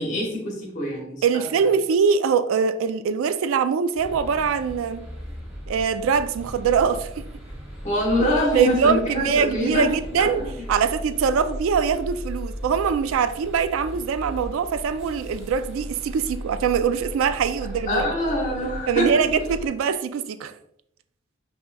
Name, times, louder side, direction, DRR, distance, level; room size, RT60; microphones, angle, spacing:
voice 1, 0.0-1.2 7.8-9.9 10.2-10.5 17.9-19.2, left 1 dB, 35° left, 1.2 m, -24 dB
voice 2, 1.2-5.1 5.7-7.2 8.5-18.1 18.9-20.5, right 6 dB, 85° right, 0.3 m, -23 dB
sound 1, 3.9-19.7, equal, 30° right, 1.2 m, -36 dB
5.3 x 2.9 x 2.2 m
head